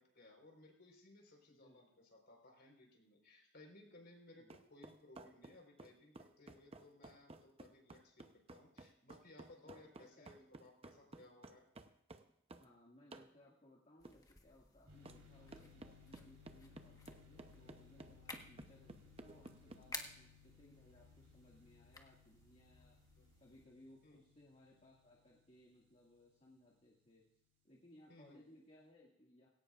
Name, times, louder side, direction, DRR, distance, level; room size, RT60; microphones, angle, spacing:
voice 1, 0.0-11.6 23.2-23.3 24.0-24.2 28.1-28.4, left 2 dB, 60° left, 1 dB, 4.3 m, -61 dB
voice 2, 1.5-2.0 4.4-4.5 9.6-10.3 10.8-11.1 12.6-23.0 23.4-27.2 27.6-29.5, left 1 dB, 40° left, -4 dB, 2.1 m, -65 dB
sound 1, 4.5-12.7 13.1-13.3 14.0-14.2 15.0-15.2 15.5-19.8, right 2 dB, 30° right, 0.8 m, -55 dB
sound 2, 14.0-23.7, left 3 dB, 20° left, 1.3 m, -56 dB
sound 3, 14.9-27.3, left 5 dB, 85° right, 3.9 m, -65 dB
18.5 x 17.0 x 2.5 m, 0.78 s
head